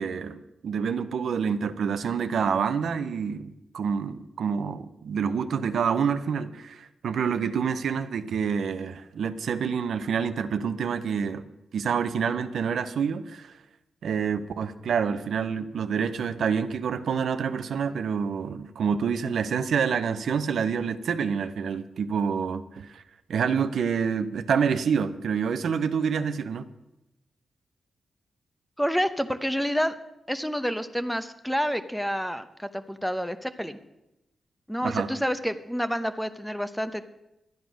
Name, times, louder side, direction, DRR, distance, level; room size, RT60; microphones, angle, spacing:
voice 1, 0.0-11.5 11.7-13.5 14.0-23.0 23.3-26.7 34.8-35.1, right 6 dB, 75° right, 11 dB, 0.7 m, -27 dB
voice 2, 28.8-29.9 30.3-33.8 34.7-37.1, equal, ahead, 11 dB, 0.8 m, -28 dB
12.0 x 9.3 x 6.2 m, 0.90 s
cardioid pair, 105°, 0 cm